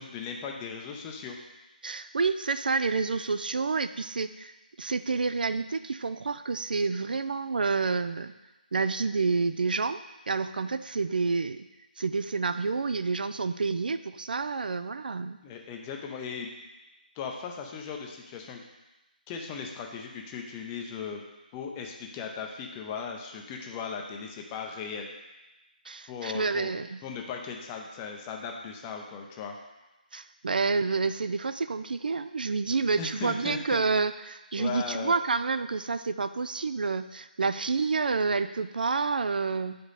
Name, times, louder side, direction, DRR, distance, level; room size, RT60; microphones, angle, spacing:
voice 1, 0.0-1.4 15.4-16.5 17.2-18.6 19.3-21.2 21.5-25.1 26.1-29.5 33.0-33.8 34.6-35.2, left 6 dB, 15° left, 2 dB, 0.6 m, -38 dB
voice 2, 1.8-8.3 8.7-10.0 10.3-11.7 12.0-15.4 25.9-27.0 30.1-39.8, right 4 dB, 65° right, 11 dB, 0.4 m, -29 dB
7.7 x 5.1 x 4.1 m, 1.1 s
figure-of-eight pair, 165°, 5 cm